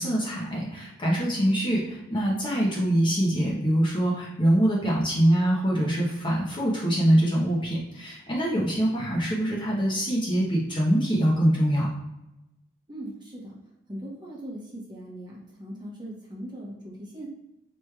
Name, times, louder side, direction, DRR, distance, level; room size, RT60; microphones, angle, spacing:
voice 1, 0.0-11.9, right 1 dB, 25° left, -4 dB, 0.9 m, -24 dB
voice 2, 12.9-13.6 13.9-17.3, right 1 dB, 20° right, -4 dB, 1.0 m, -39 dB
5.0 x 3.0 x 2.3 m, 0.93 s
head